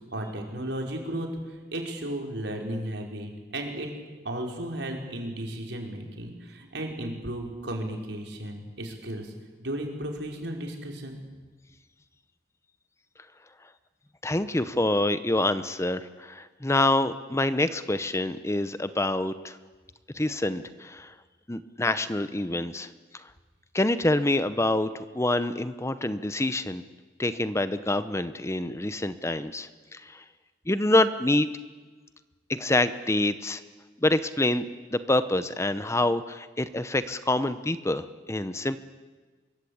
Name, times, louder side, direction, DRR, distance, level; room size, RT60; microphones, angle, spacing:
voice 1, 0.1-3.9 4.2-9.3 9.6-11.2, right 1 dB, 80° right, 1 dB, 5.1 m, -34 dB
voice 2, 14.2-19.6 20.1-21.1 21.5-23.3 23.7-26.8 27.2-30.2 30.7-31.5 32.5-33.6 34.0-34.7 34.9-38.8, left 1 dB, 15° left, 12 dB, 0.9 m, -26 dB
25.0 x 23.0 x 8.7 m, 1.4 s
head